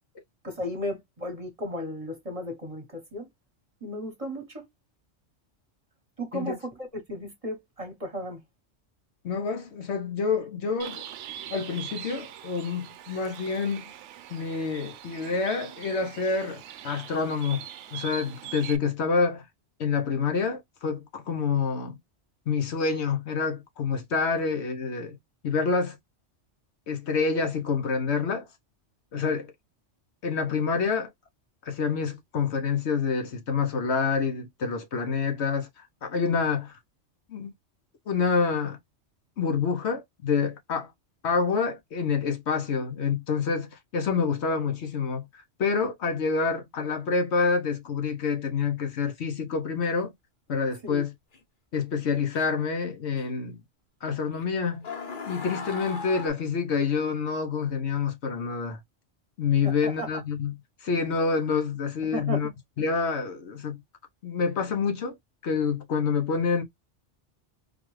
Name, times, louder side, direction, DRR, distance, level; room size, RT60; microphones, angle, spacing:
voice 1, 0.4-3.3 3.8-4.7 6.2-8.4 50.8-51.0 59.6-60.1 62.0-62.5, equal, 30° right, 1.2 m, -35 dB
voice 2, 9.2-11.0 11.5-13.9 14.3-17.6 17.9-19.4 19.8-22.0 22.5-25.2 25.4-26.0 26.9-28.5 29.1-29.5 30.2-31.1 31.7-36.7 37.3-37.5 38.1-38.8 39.4-40.9 41.2-45.3 45.6-50.1 50.5-51.1 51.7-53.6 54.0-54.9 55.2-58.8 59.4-62.5 62.8-63.8 64.2-65.2 65.4-66.6, left 5 dB, 70° left, 1.1 m, -27 dB
Bird, 10.8-18.8, right 10 dB, 85° right, 0.9 m, -42 dB
sound 1, 51.3-51.4 52.3-52.7 53.2-53.3 54.3-54.4 54.8-56.3, left 4 dB, 50° left, 1.0 m, -37 dB
4.0 x 2.4 x 3.1 m
omnidirectional pair, 1.2 m